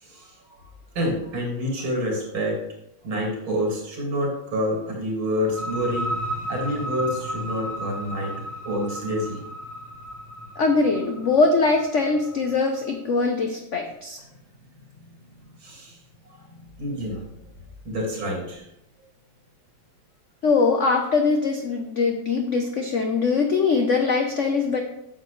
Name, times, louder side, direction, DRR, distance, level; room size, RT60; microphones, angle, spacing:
voice 1, 0.0-0.7 0.9-2.6 3.0-6.1 6.5-8.3 8.6-9.4 15.1-15.2 15.6-16.0 16.3-16.5 16.8-17.2 17.8-18.7, equal, 80° right, -1 dB, 3.0 m, -28 dB
sound 1, 5.4-12.9, equal, 25° left, 1.5 m, -34 dB
voice 2, 10.6-14.2 20.4-24.8, left 4 dB, 75° left, 4 dB, 0.6 m, -22 dB
9.3 x 6.7 x 3.2 m, 0.82 s
omnidirectional pair, 2.2 m